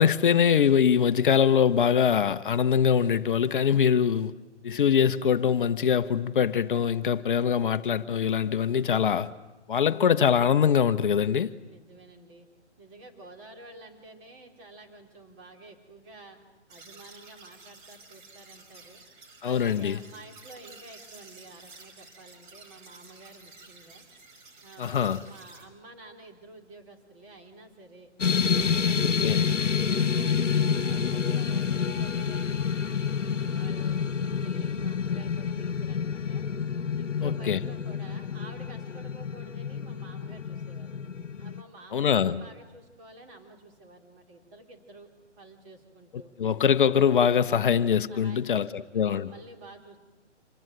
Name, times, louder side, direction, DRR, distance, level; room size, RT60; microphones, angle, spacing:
voice 1, 0.0-4.3 4.6-9.3 9.7-11.5 19.4-20.0 24.8-25.2 29.0-29.4 37.2-37.6 41.9-42.4 46.4-49.3, left 8 dB, 45° left, 0.8 m, -23 dB
voice 2, 11.6-12.5 12.8-16.4 16.7-19.0 19.4-24.1 24.6-29.4 29.9-36.5 37.0-40.9 41.4-45.1 45.4-46.3 48.1-50.0, right 2 dB, 25° right, 3.7 m, -50 dB
sound 1, 16.7-25.7, right 3 dB, 40° right, 4.8 m, -51 dB
sound 2, 28.2-41.6, left 6 dB, 80° left, 1.1 m, -28 dB
26.5 x 19.5 x 9.2 m
figure-of-eight pair, 145°, 36 cm